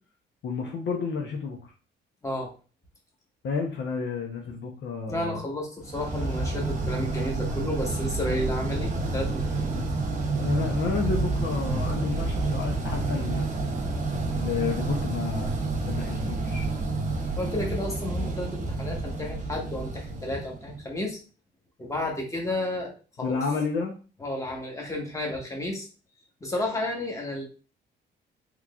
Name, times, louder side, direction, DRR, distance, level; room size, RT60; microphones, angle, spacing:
voice 1, 0.4-1.7 3.4-5.4 8.3-8.4 9.7-10.0 10.3-13.5 14.1-15.5 15.8-16.7 23.2-24.0, left 5 dB, 65° left, 2 dB, 0.7 m, -31 dB
voice 2, 5.1-9.7 17.4-21.2 21.8-22.9 23.2-23.4 24.2-25.9 26.4-27.4, left 1 dB, 15° left, 0 dB, 1.3 m, -32 dB
sound 1, 5.9-20.9, right 3 dB, 40° right, 0.7 m, -29 dB
3.6 x 3.1 x 2.4 m, 0.35 s
cardioid pair, 90°, 20 cm